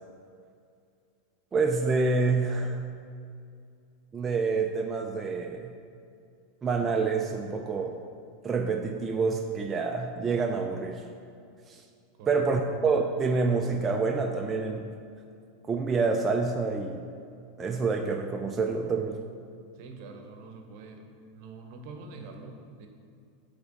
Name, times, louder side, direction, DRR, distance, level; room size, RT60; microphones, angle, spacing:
voice 1, 1.5-2.8 4.1-5.7 6.6-8.0 8.4-11.0 11.7-11.8 12.3-14.9 15.7-17.0 17.6-19.2, right 4 dB, 25° right, 3 dB, 0.4 m, -27 dB
voice 2, 19.8-21.1 21.3-22.9, right 3 dB, 60° right, 4 dB, 0.8 m, -45 dB
7.8 x 3.4 x 4.0 m, 2.4 s
hypercardioid pair, 105°, 0 cm